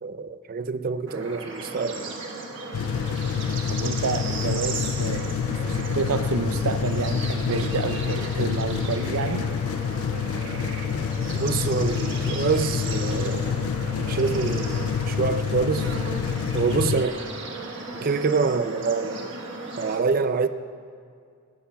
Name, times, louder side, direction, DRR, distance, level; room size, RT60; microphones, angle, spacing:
voice 1, 0.0-2.2 11.4-13.7 14.0-15.9 16.5-17.2 17.9-19.4 19.8-20.5, right 4 dB, 45° right, 11 dB, 0.4 m, -26 dB
Bird / Insect / Frog, 1.1-20.0, right 3 dB, 60° right, 1.4 m, -35 dB
sound 1, 2.7-17.1, left 7 dB, 85° left, 0.3 m, -27 dB
voice 2, 3.7-5.3 5.6-9.5, right 4 dB, 90° right, 10 dB, 0.6 m, -29 dB
19.5 x 15.5 x 2.3 m, 2.2 s
head